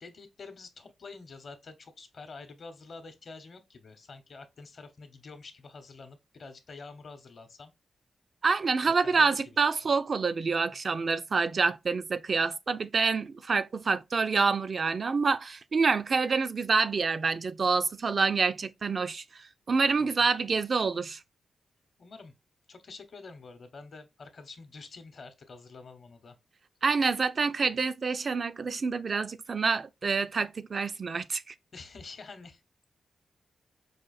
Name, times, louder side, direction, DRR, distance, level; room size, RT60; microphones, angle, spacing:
voice 1, 0.0-7.7 9.0-9.6 20.0-20.3 22.0-22.3 22.7-26.4 31.7-32.6, left 4 dB, 60° left, 0.8 m, -47 dB
voice 2, 8.4-21.2 26.8-31.5, right 4 dB, 50° right, 0.4 m, -27 dB
4.9 x 2.5 x 2.4 m
cardioid pair, 60°, 0 cm